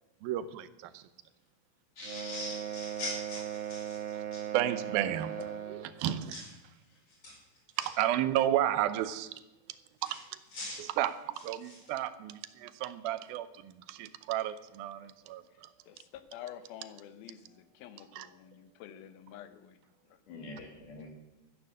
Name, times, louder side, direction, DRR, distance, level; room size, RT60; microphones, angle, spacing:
voice 1, 0.2-1.0 4.5-5.3 5.7-6.4 7.8-9.3 10.0-10.2 10.8-15.7 18.2-18.3, right 12 dB, 80° right, 14 dB, 2.5 m, -32 dB
sound 1, 2.0-4.4 6.3-6.5 7.1-7.9 10.0-11.9, left 2 dB, 40° left, 5.9 m, -42 dB
sound 2, 2.0-5.9, right 10 dB, 45° right, 1.7 m, -38 dB
voice 2, 5.0-5.8 20.3-21.1, left 3 dB, 60° left, 2 dB, 4.0 m, -46 dB
voice 3, 15.5-19.8 20.1-20.2, left 10 dB, 80° left, 12 dB, 2.8 m, -49 dB
14.0 x 9.9 x 6.5 m, 1.0 s
omnidirectional pair, 4.2 m